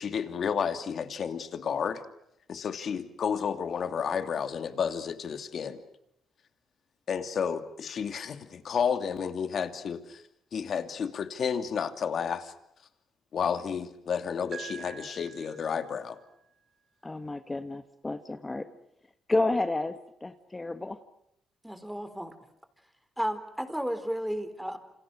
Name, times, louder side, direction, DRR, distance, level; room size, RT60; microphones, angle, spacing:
voice 1, 0.0-2.0 2.5-5.8 7.1-10.2 10.5-12.5 13.3-16.2, left 7 dB, 55° left, 8 dB, 2.7 m, -31 dB
Piano, 14.5-16.4, right 8 dB, 45° right, 3.4 m, -46 dB
voice 2, 17.0-18.7 19.3-21.0, left 2 dB, 20° left, 9 dB, 1.5 m, -31 dB
voice 3, 21.6-22.3 23.2-24.8, equal, ahead, 10 dB, 4.0 m, -33 dB
28.5 x 27.0 x 6.3 m, 0.78 s
cardioid pair, 90°, 0 cm